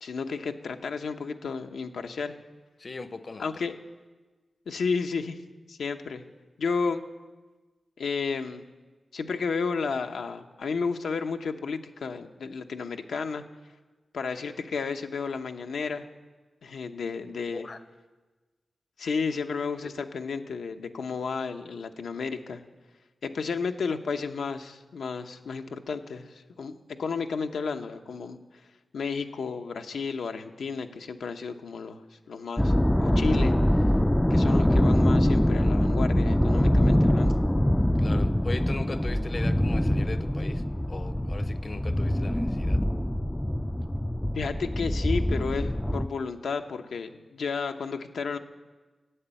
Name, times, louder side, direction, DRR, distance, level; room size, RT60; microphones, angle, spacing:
voice 1, 0.0-2.4 3.4-3.7 4.7-5.4 5.7-6.2 6.6-7.0 8.0-8.6 9.1-13.4 14.1-16.1 16.6-17.7 19.0-22.6 23.2-28.4 28.9-32.7 33.0-33.5 34.3-37.4 44.3-48.4, left 5 dB, 90° left, 6 dB, 0.8 m, -32 dB
voice 2, 2.8-3.6 17.5-17.8 38.0-42.8, left 3 dB, 45° left, 12 dB, 0.7 m, -39 dB
sound 1, 32.6-46.1, left 1 dB, 10° left, 0.3 m, -24 dB
11.0 x 8.2 x 8.8 m, 1.3 s
cardioid pair, 75°, 0 cm